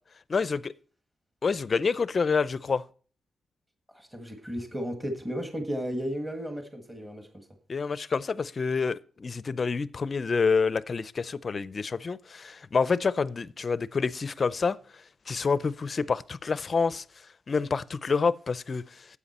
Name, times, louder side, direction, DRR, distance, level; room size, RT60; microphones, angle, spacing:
voice 1, 0.3-0.7 1.4-2.8 7.7-14.8 15.3-17.0 17.5-19.1, left 5 dB, 35° left, 0.5 m, -27 dB
voice 2, 3.9-7.4, equal, 10° right, 1.5 m, -34 dB
12.5 x 8.4 x 4.2 m
wide cardioid pair, 150°, 0 cm